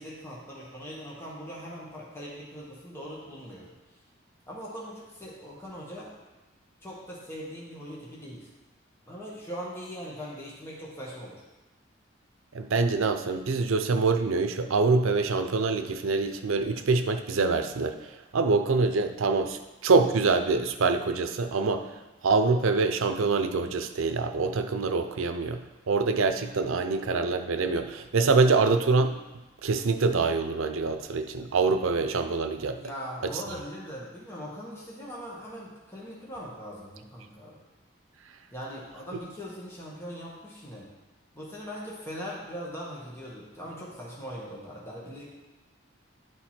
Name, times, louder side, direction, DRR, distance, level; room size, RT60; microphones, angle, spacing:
voice 1, 0.0-3.7 4.5-6.1 6.8-8.5 9.1-11.4 32.8-37.6 38.5-40.9 41.3-45.3, equal, 10° left, -6 dB, 1.4 m, -40 dB
voice 2, 12.5-18.0 18.3-21.9 22.2-25.6 25.9-29.2 29.6-32.8, right 4 dB, 85° right, 8 dB, 0.6 m, -25 dB
11.0 x 4.6 x 4.4 m, 1.1 s
head